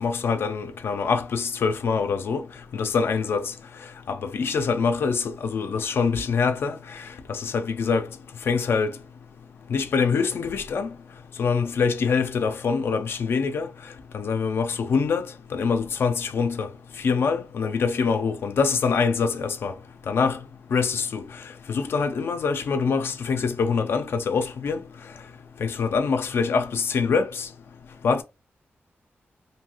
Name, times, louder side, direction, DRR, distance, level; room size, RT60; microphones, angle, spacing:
voice 1, 0.0-2.4 2.7-3.4 4.1-6.8 7.3-8.1 8.5-8.9 9.7-10.9 11.4-13.7 14.1-15.2 15.5-16.7 17.0-19.7 20.1-20.4 20.7-21.2 21.7-24.8 25.6-27.5 28.0-28.2, left 5 dB, 65° left, 0.4 m, -24 dB
2.7 x 2.3 x 2.9 m
wide cardioid pair, 175°, 4 cm